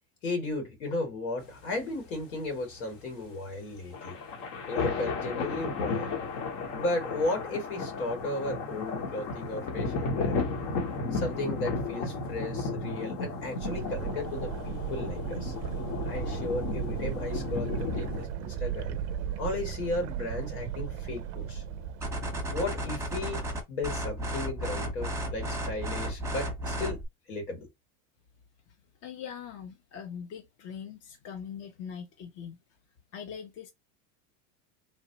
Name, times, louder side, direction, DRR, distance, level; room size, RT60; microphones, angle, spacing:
voice 1, 0.2-4.1 4.7-6.1 6.7-10.4 11.1-15.5 16.0-19.0 19.4-21.6 22.5-23.4 23.7-27.0 27.3-27.7, left 2 dB, 90° left, 1.7 m, -35 dB
sound 1, 1.4-18.3, left 3 dB, 65° left, 1.0 m, -34 dB
sound 2, 13.6-23.2, right 8 dB, 40° right, 0.4 m, -36 dB
sound 3, 22.0-27.1, equal, 5° right, 0.8 m, -33 dB
voice 2, 29.0-32.6 33.1-33.7, left 7 dB, 35° left, 0.5 m, -41 dB
3.1 x 2.1 x 2.7 m
supercardioid pair, 120°, 43 cm